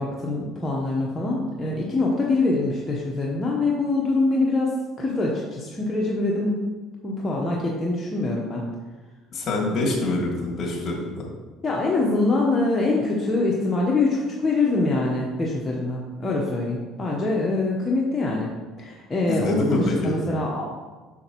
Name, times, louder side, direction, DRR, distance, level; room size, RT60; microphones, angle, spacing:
voice 1, 0.0-4.7 5.0-6.6 7.0-8.7 11.6-18.5 18.8-20.7, left 2 dB, 25° left, -3 dB, 1.1 m, -24 dB
voice 2, 9.3-11.3 19.3-20.1, left 2 dB, 45° left, -1 dB, 2.0 m, -25 dB
6.5 x 6.2 x 3.1 m, 1.3 s
supercardioid pair, 80°, 0 cm